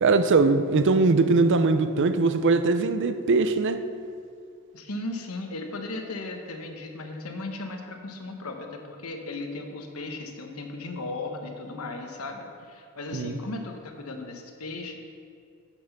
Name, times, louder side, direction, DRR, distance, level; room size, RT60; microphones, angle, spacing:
voice 1, 0.0-3.8 13.1-13.4, right 3 dB, 60° right, 0.5 m, -21 dB
voice 2, 4.7-15.0, left 2 dB, 80° left, 1.1 m, -36 dB
8.7 x 5.9 x 6.7 m
head